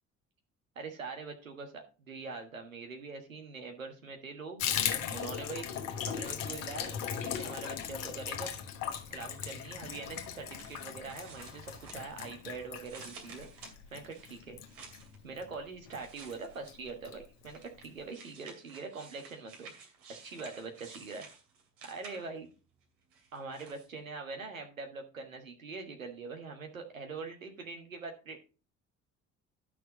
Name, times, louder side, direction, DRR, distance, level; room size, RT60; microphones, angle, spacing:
voice 1, 0.7-4.6 5.1-5.7 6.1-8.5 9.1-13.5 13.9-14.6 15.2-19.7 20.2-21.3 21.8-22.5 23.3-28.4, right 4 dB, 80° right, 3 dB, 1.5 m, -43 dB
Water tap faucet / Bathtub (filling or washing), 4.6-15.5 15.9-16.0 16.3-16.4 16.7-17.2 17.4-17.5 17.8-17.9, left 8 dB, 70° left, 1.2 m, -38 dB
sound 1, 10.3-12.4 12.8-15.2 15.9-16.9 17.5-22.5 23.1-23.9, right 5 dB, 65° right, 2.6 m, -52 dB
11.5 x 6.2 x 3.9 m, 0.33 s
figure-of-eight pair, 50°, 39 cm